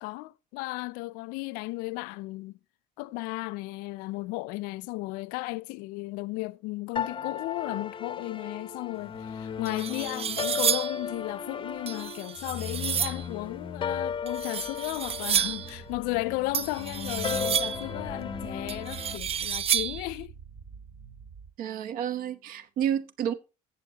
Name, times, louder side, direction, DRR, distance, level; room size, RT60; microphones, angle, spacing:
voice 1, 0.0-2.5 3.0-20.3, left 22 dB, 90° left, 0.4 m, -35 dB
sound 1, 7.0-19.2, left 7 dB, 35° left, 0.7 m, -36 dB
sound 2, 9.1-9.2 9.6-11.0 11.9-13.3 14.3-15.7 16.5-17.9 18.7-20.1, right 8 dB, 45° right, 0.5 m, -30 dB
sound 3, 13.3-21.5, right 5 dB, 60° right, 2.2 m, -47 dB
voice 2, 21.6-23.3, right 9 dB, 75° right, 1.1 m, -30 dB
16.0 x 6.9 x 2.9 m
supercardioid pair, 85°, 15 cm